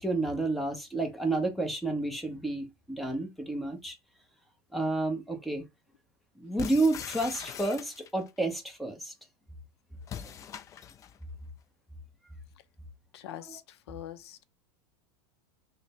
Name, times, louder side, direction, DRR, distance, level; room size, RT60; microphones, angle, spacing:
voice 1, 0.0-3.9 4.7-5.6 6.4-9.1 10.2-10.3 13.3-13.6, right 2 dB, ahead, 0.9 m, -30 dB
sound 1, 6.6-8.3 10.0-11.2, left 8 dB, 25° left, 0.3 m, -41 dB
voice 2, 13.1-14.4, left 12 dB, 85° left, 0.5 m, -44 dB
3.2 x 2.1 x 4.1 m
supercardioid pair, 130°, 13 cm